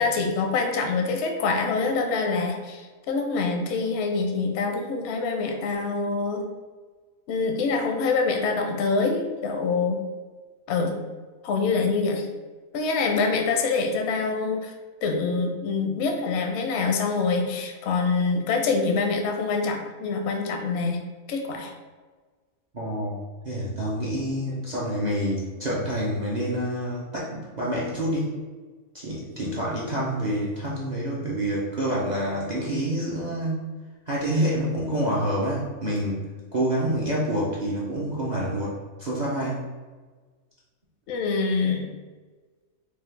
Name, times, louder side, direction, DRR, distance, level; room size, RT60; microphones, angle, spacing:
voice 1, 0.0-6.4 7.3-10.0 10.7-11.0 11.4-12.3 12.7-14.7 15.0-21.0 21.3-21.7 41.1-41.9, left 4 dB, 65° left, 3 dB, 0.7 m, -25 dB
voice 2, 22.7-28.3 28.9-33.7 34.1-39.6, right 1 dB, 55° right, -6 dB, 0.4 m, -27 dB
4.9 x 2.2 x 3.2 m, 1.4 s
omnidirectional pair, 1.5 m